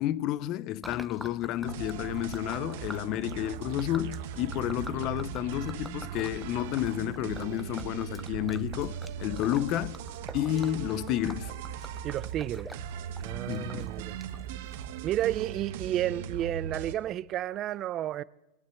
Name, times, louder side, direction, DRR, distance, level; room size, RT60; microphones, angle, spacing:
voice 1, 0.0-10.0 10.3-11.5 13.5-13.9, left 13 dB, 45° left, 0.6 m, -31 dB
Gurgling / Liquid, 0.8-15.4, equal, ahead, 0.7 m, -48 dB
sound 1, 1.6-16.9, right 9 dB, 65° right, 1.3 m, -39 dB
voice 2, 12.0-12.7 13.2-14.2 15.0-18.2, right 12 dB, 35° right, 0.5 m, -31 dB
20.0 x 9.0 x 7.6 m
supercardioid pair, 135°, 0 cm